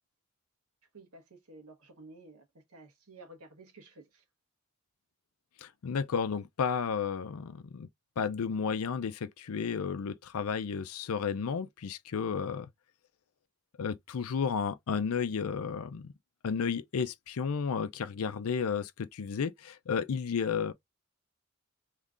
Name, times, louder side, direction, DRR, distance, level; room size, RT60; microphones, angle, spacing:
voice 1, 0.9-4.2, right 2 dB, 85° right, 1.3 m, -53 dB
voice 2, 5.6-7.9 8.2-12.7 13.8-16.1 16.4-20.7, left 6 dB, 80° left, 0.5 m, -32 dB
3.6 x 3.1 x 2.4 m
head